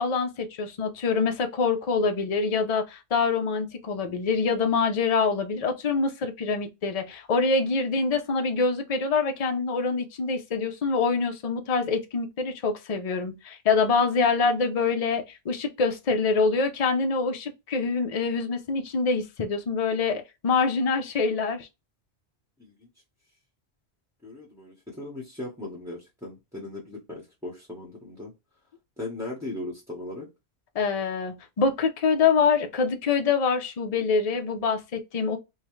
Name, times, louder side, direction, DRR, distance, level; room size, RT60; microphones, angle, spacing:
voice 1, 0.0-21.7 30.7-35.4, left 4 dB, 40° left, 0.6 m, -25 dB
voice 2, 24.2-28.3 29.0-30.3, left 2 dB, 5° right, 0.9 m, -38 dB
5.4 x 2.1 x 3.1 m
omnidirectional pair, 1.1 m